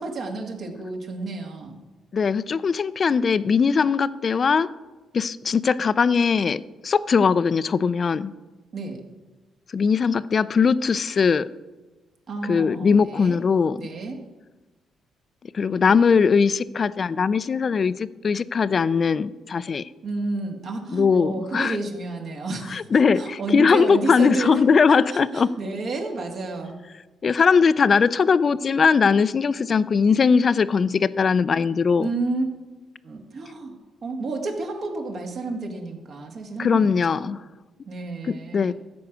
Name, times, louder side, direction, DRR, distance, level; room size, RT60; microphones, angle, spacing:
voice 1, 0.0-1.8 8.7-9.0 12.3-13.4 13.8-14.2 20.0-24.6 24.9-26.8 32.0-32.4 33.0-37.3 37.9-38.7, right 3 dB, 55° right, 2 dB, 2.0 m, -31 dB
voice 2, 2.1-4.7 5.1-8.3 9.7-11.5 12.4-13.8 15.5-19.9 20.9-21.8 22.7-25.5 27.2-32.1 36.6-37.4 38.3-38.7, left 5 dB, 45° left, 16 dB, 0.4 m, -20 dB
14.0 x 4.7 x 7.9 m, 1.2 s
cardioid pair, 90°, 0 cm